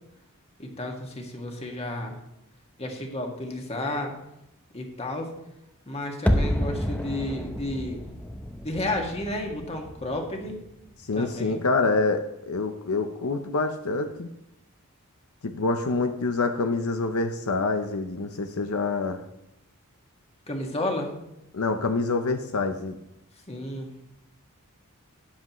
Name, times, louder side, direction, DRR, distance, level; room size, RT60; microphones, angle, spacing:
voice 1, 0.6-2.2 2.8-4.1 4.7-5.3 5.9-8.0 8.6-10.6 11.1-11.6 20.5-21.1 23.5-23.9, left 1 dB, 30° left, 2 dB, 1.9 m, -32 dB
sound 1, 6.3-11.2 11.5-11.6, equal, 5° left, 0.8 m, -30 dB
voice 2, 11.1-14.3 15.4-19.2 21.5-23.0, left 3 dB, 75° left, 7 dB, 0.7 m, -26 dB
13.0 x 9.9 x 3.1 m, 0.85 s
head